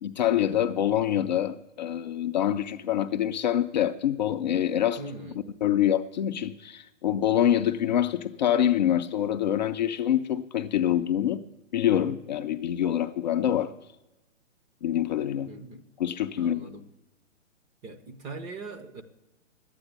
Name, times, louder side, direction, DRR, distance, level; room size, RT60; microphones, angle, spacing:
voice 1, 0.0-5.0 5.6-11.4 11.7-13.7 14.8-15.5 16.0-16.7, left 11 dB, 35° left, 0.5 m, -25 dB
voice 2, 5.0-5.4 15.5-15.8 16.4-16.9 17.8-19.0, right 3 dB, 15° right, 0.6 m, -41 dB
11.5 x 9.0 x 8.3 m
hypercardioid pair, 135°, 38 cm